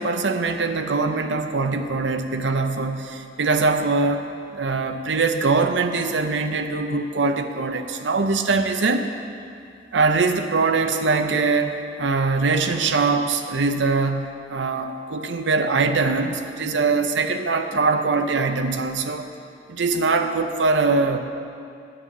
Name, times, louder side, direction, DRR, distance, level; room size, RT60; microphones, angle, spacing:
voice 1, 0.0-4.3 4.5-9.1 9.9-19.3 19.7-21.2, right 3 dB, 85° right, 7 dB, 0.7 m, -22 dB
9.9 x 5.6 x 8.3 m, 2.4 s
head